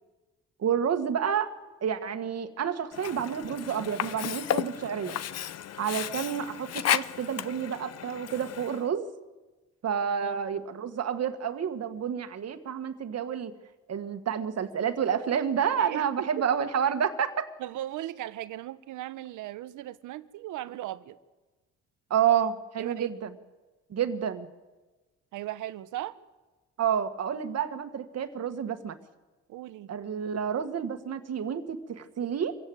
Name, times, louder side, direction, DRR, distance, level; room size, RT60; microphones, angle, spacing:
voice 1, 0.6-1.5 1.8-5.2 5.8-9.1 9.8-13.5 13.9-17.5 22.1-23.3 23.9-24.5 26.8-29.0 29.9-32.6, right 8 dB, 55° right, 9 dB, 1.9 m, -29 dB
Sink (filling or washing), 2.9-8.9, left 10 dB, 55° left, 0.8 m, -33 dB
voice 2, 15.8-16.4 17.6-21.2 22.8-23.1 25.3-26.2 29.5-29.9, right 14 dB, 85° right, 14 dB, 1.1 m, -37 dB
26.0 x 16.5 x 8.0 m, 1.2 s
cardioid pair, 90°, 30 cm